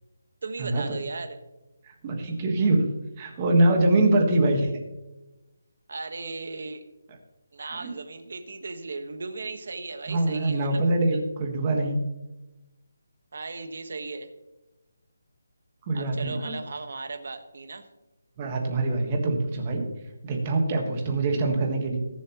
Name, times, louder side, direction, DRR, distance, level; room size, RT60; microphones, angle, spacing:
voice 1, 0.4-1.4 5.9-6.8 7.5-10.8 13.3-14.3 15.9-17.9, right 3 dB, 50° right, 8 dB, 1.3 m, -36 dB
voice 2, 1.8-2.8 3.2-4.7 7.7-7.9 10.1-12.0 15.9-16.5 18.4-19.9 20.2-22.0, right 2 dB, 20° right, 2 dB, 1.4 m, -24 dB
21.5 x 7.3 x 3.0 m, 1.0 s
hypercardioid pair, 180°, 0 cm